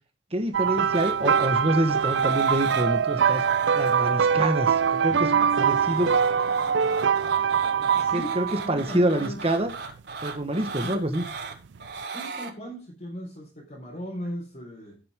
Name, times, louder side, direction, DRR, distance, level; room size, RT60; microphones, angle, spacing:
voice 1, 0.3-3.4 3.7-5.3 5.6-6.1 7.9-9.7 10.2-11.2, right 1 dB, 35° right, 5 dB, 1.4 m, -26 dB
sound 1, 0.5-8.8 9.7-9.9 11.7-11.9, right 7 dB, 90° right, 0.5 m, -23 dB
sound 2, 0.9-1.5 1.9-2.9 3.2-4.1 5.1-12.5 14.2-14.3, right 4 dB, 70° right, 4.6 m, -37 dB
voice 2, 5.3-6.9 8.0-9.5 10.8-11.0 12.1-15.0, equal, 45° left, -3 dB, 4.4 m, -39 dB
16.5 x 7.9 x 3.7 m, 0.31 s
head